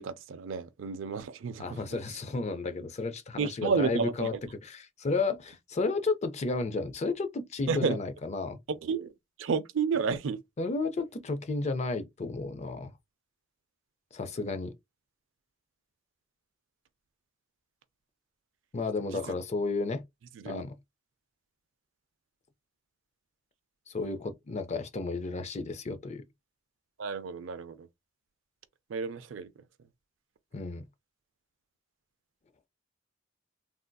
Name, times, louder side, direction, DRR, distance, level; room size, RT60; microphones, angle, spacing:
voice 1, 0.0-1.8 3.4-4.3 7.7-8.0 8.7-9.1 9.4-10.4 19.1-19.3 20.4-20.6 27.0-27.9 28.9-29.5, right 5 dB, 70° right, 0.4 m, -31 dB
voice 2, 1.6-4.3 4.6-8.6 10.6-12.9 14.1-14.7 18.7-20.0 20.4-20.8 23.9-26.3 30.5-30.9, left 3 dB, 35° left, 0.5 m, -32 dB
3.3 x 2.6 x 2.2 m
head